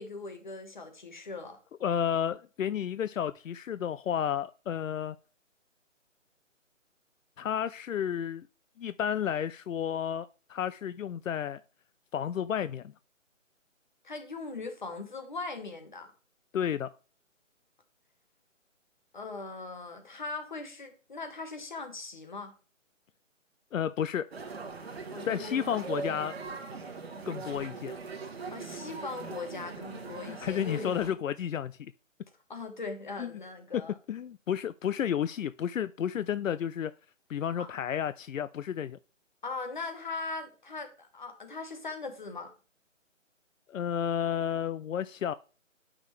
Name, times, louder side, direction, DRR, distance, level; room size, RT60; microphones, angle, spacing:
voice 1, 0.0-1.6 14.0-16.1 19.1-22.5 25.1-25.6 28.5-31.1 32.5-33.9 37.6-37.7 39.4-42.5, left 3 dB, 35° left, 1.2 m, -40 dB
voice 2, 1.8-5.2 7.4-8.5 8.8-11.6 12.1-12.9 16.5-16.9 23.7-24.3 25.3-26.3 27.2-28.0 30.3-31.9 33.2-33.3 33.7-33.8 34.1-36.9 37.3-39.0 43.7-45.3, left 9 dB, 80° left, 0.5 m, -31 dB
sound 1, 24.3-31.1, right 4 dB, 50° right, 1.2 m, -40 dB
8.5 x 6.1 x 3.2 m
hypercardioid pair, 180°, 39 cm